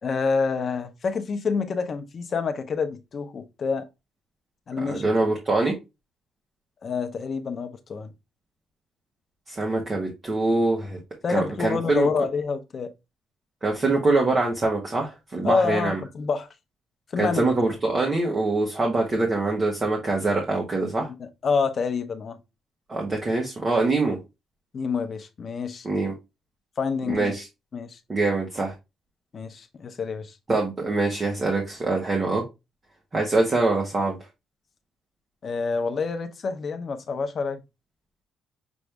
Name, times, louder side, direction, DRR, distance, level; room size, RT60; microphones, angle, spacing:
voice 1, 0.0-3.9 4.7-5.0 6.8-8.1 11.2-12.9 15.4-16.5 17.1-17.4 21.1-22.4 24.7-25.9 26.8-27.4 27.7-28.0 29.3-30.4 35.4-37.6, left 5 dB, 40° left, 0.7 m, -27 dB
voice 2, 4.8-5.7 9.5-11.0 11.3-12.1 13.6-16.0 17.2-21.1 22.9-24.2 25.8-26.1 27.1-27.4 28.1-28.7 30.5-32.4 33.1-34.2, right 3 dB, 25° right, 1.1 m, -24 dB
6.1 x 2.5 x 3.3 m
cardioid pair, 140°, 0 cm